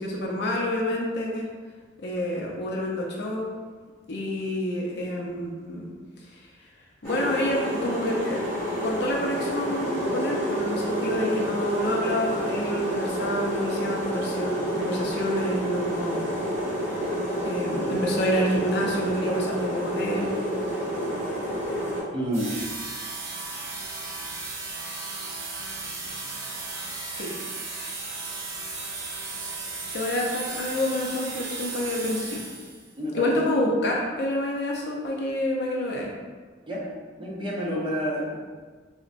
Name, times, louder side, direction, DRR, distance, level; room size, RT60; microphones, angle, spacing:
voice 1, 0.0-1.5 2.0-3.5 4.1-5.9 7.0-8.4 8.8-16.4 17.4-20.3 27.1-27.3 29.9-32.4 33.1-36.1, left 1 dB, 60° left, -1 dB, 0.5 m, -28 dB
sound 1, 7.0-22.0, equal, 10° left, 1.3 m, -29 dB
voice 2, 22.1-22.5 33.0-33.4 36.7-36.9 37.2-38.4, equal, 25° right, -5 dB, 0.6 m, -29 dB
sound 2, 22.3-32.9, right 3 dB, 85° right, 0.6 m, -35 dB
3.8 x 2.1 x 2.5 m, 1.5 s
head